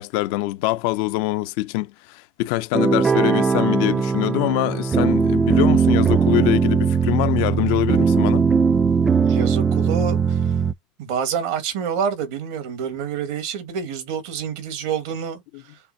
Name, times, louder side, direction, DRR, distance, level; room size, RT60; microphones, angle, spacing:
voice 1, 0.0-8.5, left 18 dB, 70° left, 0.5 m, -24 dB
sound 1, 2.7-10.7, right 6 dB, 25° right, 0.4 m, -19 dB
voice 2, 9.2-10.4 11.0-15.4, right 7 dB, 75° right, 1.8 m, -27 dB
6.5 x 2.3 x 2.7 m
hypercardioid pair, 95°, 0 cm